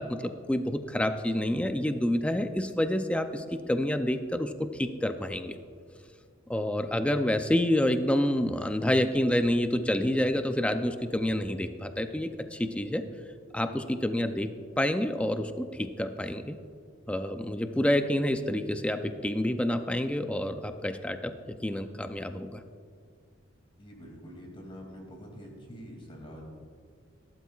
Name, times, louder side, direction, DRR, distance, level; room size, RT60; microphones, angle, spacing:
voice 1, 0.0-5.5 6.5-13.0 13.5-14.5 14.8-16.6 17.1-21.3 21.6-22.6, left 1 dB, 5° left, 8 dB, 0.4 m, -28 dB
voice 2, 23.8-26.5, equal, 25° left, 0 dB, 2.4 m, -45 dB
18.5 x 12.0 x 2.4 m, 2.2 s
head